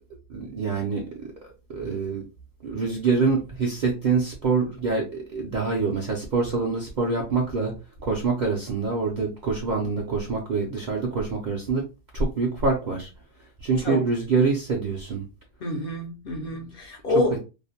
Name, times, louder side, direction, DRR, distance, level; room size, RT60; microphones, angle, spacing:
voice 1, 0.3-2.2 2.6-7.7 8.0-11.8 12.1-13.1 13.6-15.2 16.5-16.6 17.1-17.4, right 4 dB, 60° right, 0.5 m, -25 dB
voice 2, 15.6-17.4, left 2 dB, 65° left, 0.6 m, -27 dB
2.5 x 2.1 x 2.7 m
omnidirectional pair, 1.3 m